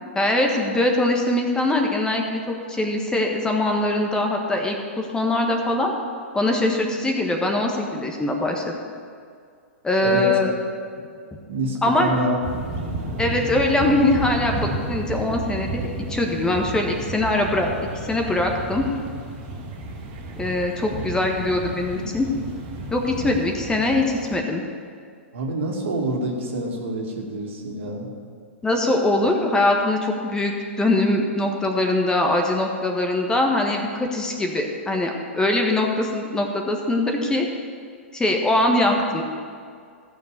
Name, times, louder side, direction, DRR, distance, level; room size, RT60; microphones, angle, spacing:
voice 1, 0.1-5.9 6.3-8.8 9.8-10.5 11.8-12.1 13.2-17.7 18.1-18.9 20.4-22.3 22.9-24.6 28.6-37.5 38.1-39.2, left 2 dB, 10° left, 2 dB, 1.3 m, -22 dB
voice 2, 11.5-12.4 25.3-28.1, right 2 dB, 70° right, 0 dB, 2.5 m, -27 dB
sound 1, 12.4-24.4, right 2 dB, 45° right, 2.4 m, -32 dB
14.5 x 7.1 x 6.6 m, 2.2 s
hypercardioid pair, 115°, 7 cm